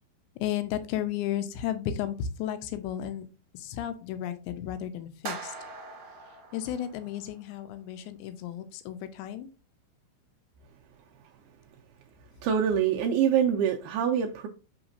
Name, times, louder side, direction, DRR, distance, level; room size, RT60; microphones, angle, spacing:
voice 1, 0.4-3.2 3.5-5.5 6.5-9.5, left 10 dB, 85° left, 10 dB, 2.9 m, -33 dB
sound 1, 5.2-7.5, right 4 dB, 50° right, 1.6 m, -42 dB
voice 2, 12.4-14.5, right 8 dB, 85° right, 2 dB, 2.3 m, -25 dB
6.3 x 5.8 x 2.7 m, 0.33 s
omnidirectional pair, 5.2 m